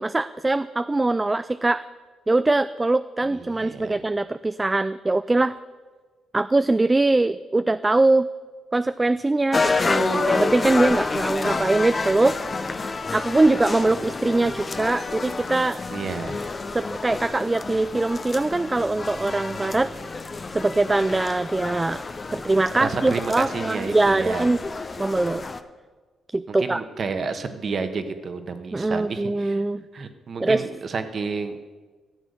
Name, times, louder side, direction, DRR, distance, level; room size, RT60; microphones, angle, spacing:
voice 1, 0.0-1.9 2.3-5.6 6.3-8.3 8.7-12.6 13.1-15.8 16.7-19.9 20.5-22.0 22.3-24.6 25.0-25.4 26.3-26.8 28.7-29.8 30.4-30.7, right 2 dB, 20° right, 13 dB, 0.3 m, -22 dB
voice 2, 3.3-3.9 15.9-16.4 22.8-24.5 26.5-29.6 29.9-31.8, right 4 dB, 50° right, 9 dB, 1.2 m, -30 dB
sound 1, 9.5-25.6, left 3 dB, 35° left, 0.8 m, -29 dB
13.5 x 7.9 x 6.6 m, 1.4 s
cardioid pair, 75°, 0 cm